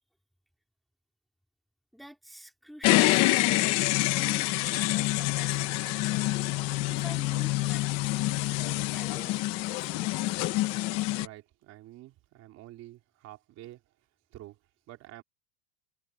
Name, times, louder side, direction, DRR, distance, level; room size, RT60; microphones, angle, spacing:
voice 1, 1.9-3.6 3.9-6.2 6.9-10.4, equal, ahead, 3.0 m, -49 dB
sound 1, 2.8-11.3, left 18 dB, 35° left, 0.9 m, -27 dB
voice 2, 11.2-13.8 14.3-14.6 14.9-15.2, right 15 dB, 35° right, 3.9 m, -48 dB
supercardioid pair, 175°, 46 cm